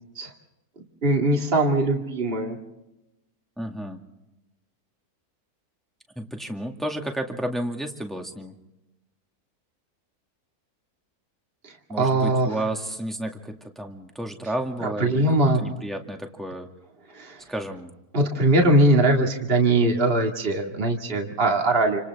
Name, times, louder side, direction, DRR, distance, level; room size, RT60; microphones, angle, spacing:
voice 1, 1.0-2.6 12.0-12.5 15.0-15.6 17.1-17.4 18.1-22.0, right 2 dB, 40° right, 1 dB, 2.4 m, -21 dB
voice 2, 3.6-4.0 6.2-8.5 11.9-16.7 17.5-17.9, right 1 dB, ahead, 2 dB, 2.1 m, -32 dB
28.5 x 27.5 x 3.6 m, 0.93 s
omnidirectional pair, 1.6 m